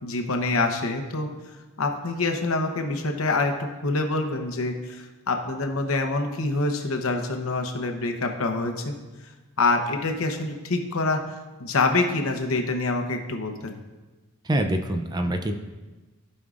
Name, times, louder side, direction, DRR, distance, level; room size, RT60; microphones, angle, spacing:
voice 1, 0.0-1.3 1.8-8.9 9.6-11.2 11.6-13.8, left 3 dB, 75° left, 4 dB, 0.9 m, -26 dB
voice 2, 14.4-15.6, right 1 dB, 20° right, 6 dB, 0.5 m, -25 dB
15.5 x 5.4 x 2.5 m, 1.2 s
head